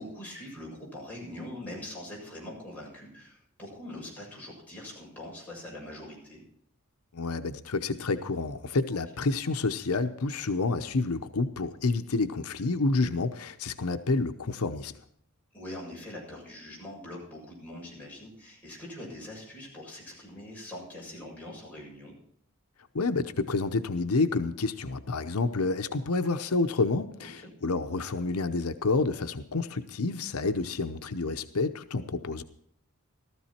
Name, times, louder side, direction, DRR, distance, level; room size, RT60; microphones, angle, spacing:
voice 1, 0.0-6.4 8.9-9.0 15.5-22.1 27.2-27.5, left 1 dB, 5° left, -5 dB, 7.4 m, -43 dB
voice 2, 7.1-14.9 22.9-32.4, left 3 dB, 90° left, 8 dB, 0.8 m, -29 dB
15.5 x 14.0 x 4.4 m, 0.68 s
head